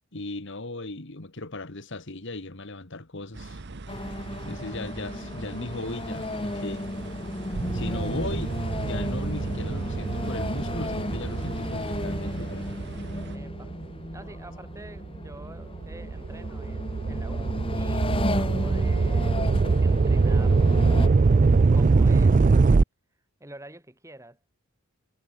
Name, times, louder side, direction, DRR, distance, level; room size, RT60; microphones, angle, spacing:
voice 1, 0.1-3.6 4.5-6.9 7.7-12.7, left 2 dB, 55° left, 1.9 m, -37 dB
sound 1, 3.3-13.4, right 3 dB, 50° right, 0.9 m, -41 dB
sound 2, 3.9-21.1, left 1 dB, 25° left, 1.4 m, -34 dB
sound 3, 7.5-14.3 14.9-22.8, right 4 dB, 35° right, 0.3 m, -23 dB
voice 2, 13.3-13.8 14.1-20.7 21.7-22.8 23.4-24.4, right 1 dB, 15° right, 4.4 m, -47 dB
head